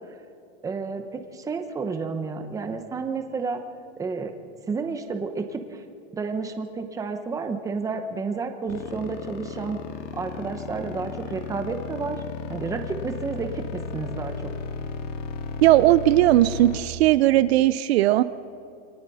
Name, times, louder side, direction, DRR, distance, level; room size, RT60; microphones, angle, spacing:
voice 1, 0.6-3.6 4.0-4.3 4.7-5.8 6.1-9.8 10.1-12.2 12.5-14.5, right 4 dB, 10° right, 6 dB, 1.0 m, -31 dB
sound 1, 8.7-16.8, left 5 dB, 85° left, 2.6 m, -35 dB
voice 2, 15.6-18.2, right 15 dB, 60° right, 14 dB, 0.6 m, -18 dB
29.0 x 23.0 x 4.2 m, 2.6 s
supercardioid pair, 165°, 36 cm